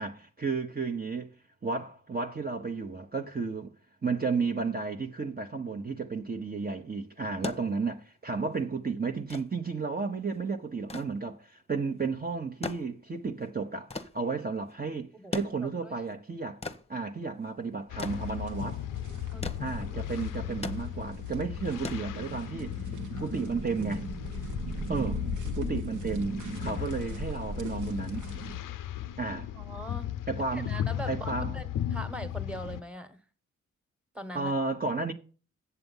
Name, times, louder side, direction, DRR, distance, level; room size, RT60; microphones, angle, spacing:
voice 1, 0.0-1.3 1.6-3.7 4.0-16.6 16.9-18.8 19.6-22.8 23.2-24.1 24.9-25.2 25.5-28.2 29.2-29.5 30.3-30.7 31.1-31.5 34.3-35.1, right 4 dB, 30° right, 1.0 m, -33 dB
sound 1, 7.2-22.7 23.9-24.0, left 3 dB, 20° left, 0.9 m, -42 dB
voice 2, 15.1-16.0 19.3-19.6 21.7-22.0 29.5-30.1 30.5-33.2 34.1-34.5, right 1 dB, 5° right, 1.4 m, -42 dB
sound 2, 17.9-32.8, left 11 dB, 80° left, 0.5 m, -36 dB
sound 3, 18.0-28.6, right 2 dB, 70° right, 1.4 m, -40 dB
8.1 x 6.8 x 5.5 m
cardioid pair, 55°, 31 cm